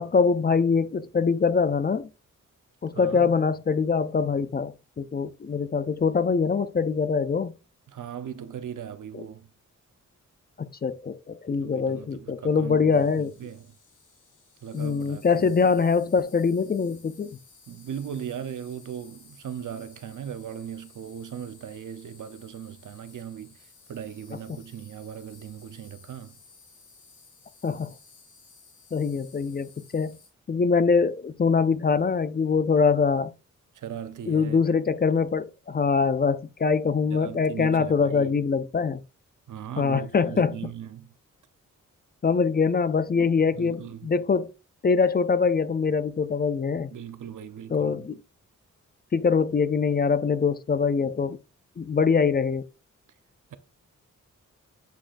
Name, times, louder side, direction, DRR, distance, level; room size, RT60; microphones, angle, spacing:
voice 1, 0.0-2.1 2.8-7.5 9.1-9.2 10.8-13.3 14.7-17.4 27.6-27.9 28.9-30.2 30.5-33.3 34.3-39.0 39.8-40.6 42.2-44.5 44.8-46.9 47.7-48.2 49.1-51.4 51.8-52.6, left 5 dB, 30° left, 0.4 m, -23 dB
voice 2, 2.9-3.3 7.9-9.5 11.6-13.7 14.6-15.6 17.7-23.6 23.9-26.4 33.7-34.6 37.1-38.3 39.5-41.1 43.6-44.1 46.9-48.0, right 9 dB, 80° right, 0.8 m, -38 dB
Insect, 12.9-30.3, left 5 dB, 75° left, 3.8 m, -55 dB
8.3 x 6.2 x 2.5 m
wide cardioid pair, 155°, 30 cm